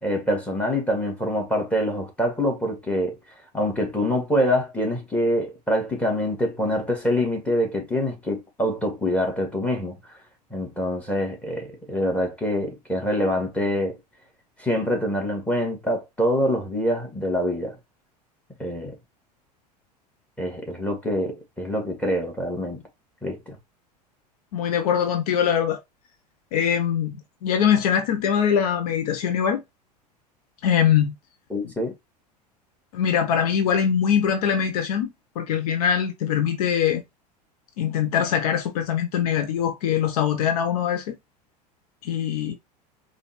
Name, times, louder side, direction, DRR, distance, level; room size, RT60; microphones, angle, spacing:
voice 1, 0.0-3.2 3.5-10.0 10.5-14.0 14.6-17.8 18.6-18.9 20.4-22.8 23.2-23.6 31.5-31.9, equal, 5° left, 2.1 m, -25 dB
voice 2, 24.5-25.8 26.5-29.6 30.6-31.1 32.9-37.0 37.8-41.2 42.0-42.5, left 8 dB, 60° left, 0.8 m, -22 dB
4.9 x 2.6 x 3.1 m
figure-of-eight pair, 80°, 21 cm